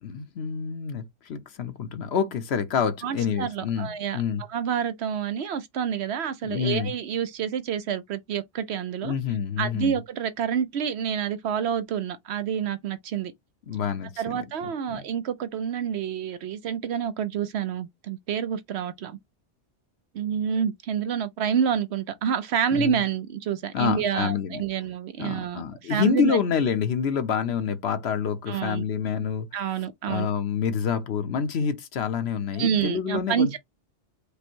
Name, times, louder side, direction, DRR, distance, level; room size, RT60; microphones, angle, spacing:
voice 1, 0.0-4.4 6.4-6.9 9.0-10.0 13.7-14.4 14.9-15.0 22.7-23.0 23.7-24.6 25.2-29.5 30.0-33.6, left 7 dB, 65° left, 1.0 m, -27 dB
voice 2, 3.0-4.2 4.5-9.1 9.6-13.3 14.2-19.2 20.1-25.6 25.9-26.4 28.5-28.8 29.5-30.3 32.5-33.6, right 8 dB, 70° right, 0.9 m, -28 dB
5.1 x 2.1 x 4.5 m
omnidirectional pair, 1.2 m